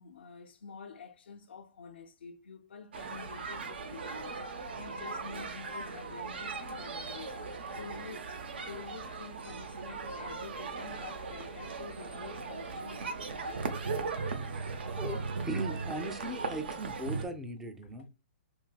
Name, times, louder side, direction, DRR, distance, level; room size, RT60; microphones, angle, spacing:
voice 1, 0.0-13.0 17.8-18.1, left 5 dB, 80° left, 0.6 m, -48 dB
sound 1, 2.9-17.3, right 4 dB, 75° right, 0.7 m, -38 dB
voice 2, 15.5-18.1, right 1 dB, 5° right, 0.4 m, -38 dB
4.6 x 2.7 x 2.3 m
hypercardioid pair, 140°, 6 cm